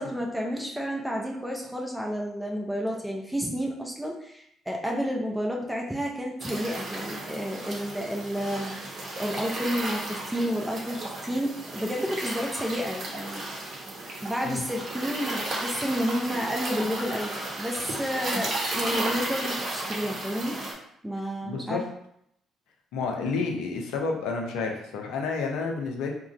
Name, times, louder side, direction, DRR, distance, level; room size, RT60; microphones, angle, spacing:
voice 1, 0.0-13.4 14.2-20.6 21.0-21.8, equal, 10° right, 0 dB, 0.5 m, -31 dB
sound 1, 6.4-20.7, right 2 dB, 50° right, 0.8 m, -34 dB
voice 2, 21.4-21.8 22.9-26.1, left 4 dB, 75° left, 2 dB, 0.5 m, -30 dB
2.4 x 2.2 x 3.9 m, 0.74 s
hypercardioid pair, 50°, 0 cm